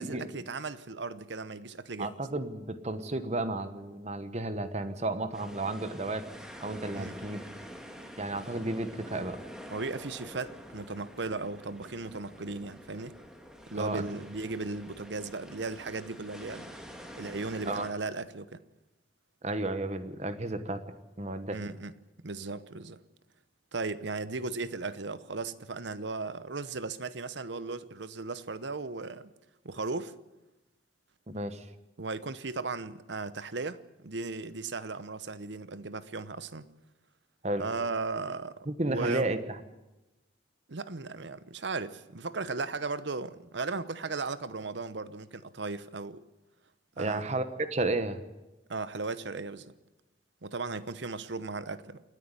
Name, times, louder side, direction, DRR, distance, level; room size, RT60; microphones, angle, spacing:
voice 1, 0.0-2.1 6.9-7.2 9.7-13.2 13.7-16.7 17.1-18.6 21.5-21.9 22.2-23.0 23.7-29.3 29.6-30.2 32.0-36.7 37.6-39.3 40.7-46.2 47.0-47.3 48.7-49.7 50.4-52.0, right 3 dB, 70° right, 0.9 m, -36 dB
voice 2, 2.0-6.3 6.6-7.4 8.2-9.4 13.7-14.0 17.7-17.9 19.4-20.8 21.2-21.6 31.3-31.7 37.4-37.6 38.7-39.4 47.0-47.4 47.7-48.2, right 2 dB, 35° right, 1.2 m, -32 dB
sound 1, 5.3-17.9, equal, 5° right, 1.8 m, -47 dB
28.5 x 9.7 x 9.8 m
head